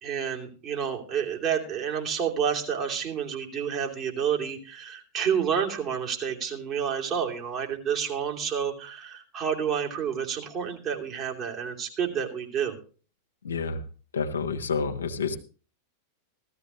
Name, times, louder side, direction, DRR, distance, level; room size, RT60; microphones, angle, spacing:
voice 1, 0.0-12.8, right 7 dB, 35° right, 0 dB, 2.9 m, -29 dB
voice 2, 13.4-13.8 14.1-15.4, left 5 dB, 70° left, 6 dB, 1.3 m, -29 dB
16.0 x 13.5 x 3.1 m, 0.38 s
figure-of-eight pair, 90°, 0 cm